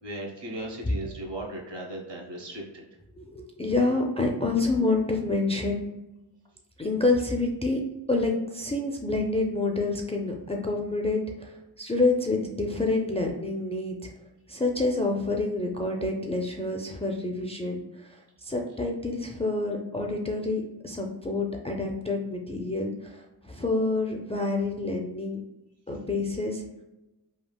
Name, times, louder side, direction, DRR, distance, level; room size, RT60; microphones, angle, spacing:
voice 1, 0.0-2.9, right 1 dB, 65° right, -1 dB, 1.0 m, -37 dB
voice 2, 3.2-5.9 6.8-7.8 8.1-14.0 14.5-25.4 25.9-26.7, left 2 dB, 15° left, 1 dB, 0.3 m, -28 dB
3.5 x 2.4 x 2.2 m, 0.98 s
cardioid pair, 40°, 47 cm